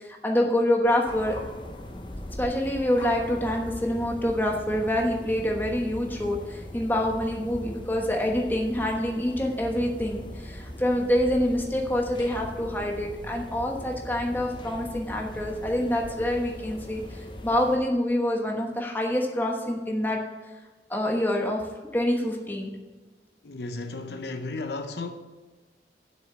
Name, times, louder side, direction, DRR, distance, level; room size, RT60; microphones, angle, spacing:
voice 1, 0.0-1.4 2.4-20.2 20.9-21.6 21.9-22.7, left 1 dB, 10° left, 1.2 m, -26 dB
sound 1, 1.1-17.8, left 1 dB, 25° left, 0.6 m, -40 dB
voice 2, 23.4-25.1, left 3 dB, 70° left, 0.7 m, -34 dB
7.7 x 6.1 x 7.3 m
head